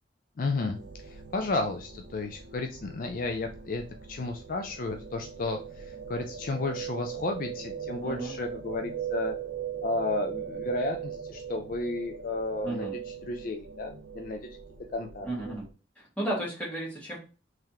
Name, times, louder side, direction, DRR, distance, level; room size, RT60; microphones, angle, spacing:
voice 1, 0.4-0.8 1.0-9.3 9.8-14.4 14.9-15.3, left 3 dB, 50° left, 5 dB, 0.4 m, -33 dB
sound 1, 0.7-15.7, right 8 dB, 75° right, 0.6 m, -40 dB
voice 2, 8.0-8.3 12.6-12.9 15.2-15.6 16.0-17.2, right 1 dB, 10° left, -6 dB, 1.9 m, -33 dB
3.6 x 3.2 x 2.8 m, 0.33 s
head